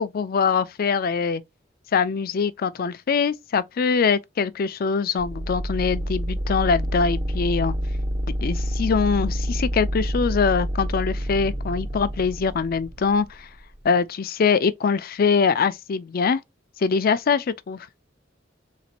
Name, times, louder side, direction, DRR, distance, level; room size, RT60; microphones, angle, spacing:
voice 1, 0.0-1.4 1.9-7.7 8.4-13.5 13.8-16.4 16.8-17.8, left 5 dB, 50° left, 0.4 m, -23 dB
sound 1, 5.2-13.9, equal, 25° right, 0.5 m, -28 dB
4.0 x 2.5 x 4.3 m
head